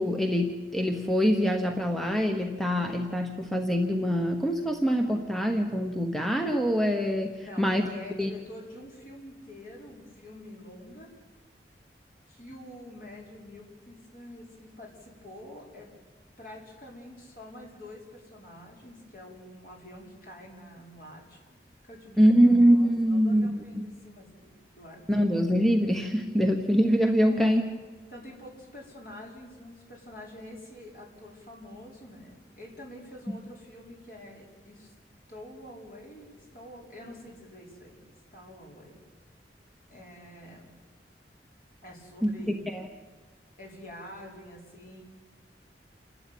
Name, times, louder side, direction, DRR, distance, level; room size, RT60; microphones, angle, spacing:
voice 1, 0.0-7.8 8.2-8.3 22.2-23.8 25.1-27.6 42.2-42.3 42.7-42.8, equal, ahead, 4 dB, 1.1 m, -24 dB
voice 2, 7.4-11.1 12.3-15.9 16.4-21.4 21.9-22.2 22.7-25.0 27.2-27.6 28.1-34.9 35.3-38.0 38.3-39.0 39.9-40.7 41.8-42.7 43.6-45.0, left 1 dB, 50° left, -2 dB, 5.4 m, -47 dB
28.5 x 12.5 x 9.4 m, 1.5 s
head